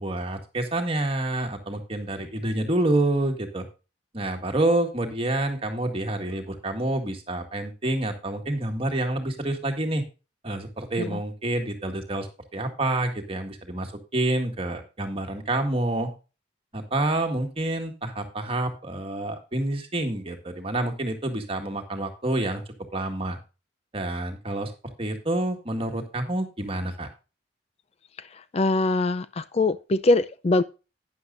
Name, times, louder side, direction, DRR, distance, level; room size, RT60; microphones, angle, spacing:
voice 1, 0.0-3.7 4.1-10.0 10.4-12.3 12.5-16.1 16.7-22.6 22.9-23.4 23.9-24.7 25.0-27.1, right 1 dB, 30° right, 1.9 m, -28 dB
voice 2, 28.5-30.6, left 2 dB, 35° left, 0.4 m, -22 dB
11.5 x 9.8 x 2.5 m
head